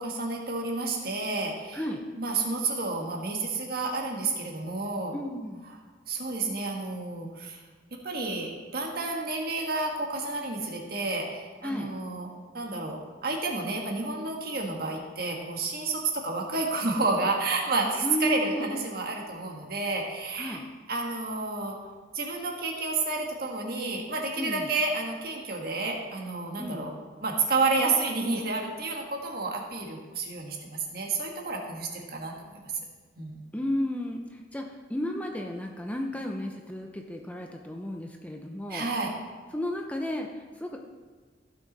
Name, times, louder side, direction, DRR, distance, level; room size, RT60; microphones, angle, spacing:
voice 1, 0.0-1.9 2.2-5.1 5.6-5.8 6.1-7.6 7.9-12.3 12.5-20.6 20.9-21.8 22.1-26.9 27.2-32.7 33.2-33.4 38.7-39.2, right 3 dB, 55° right, 1 dB, 1.6 m, -30 dB
voice 2, 1.7-2.1 5.1-5.7 11.6-11.9 18.0-18.8 20.4-20.6 24.4-24.7 26.6-26.9 33.5-38.9 39.5-40.8, left 1 dB, 10° left, 2 dB, 0.7 m, -33 dB
15.0 x 6.3 x 4.1 m, 1.4 s
head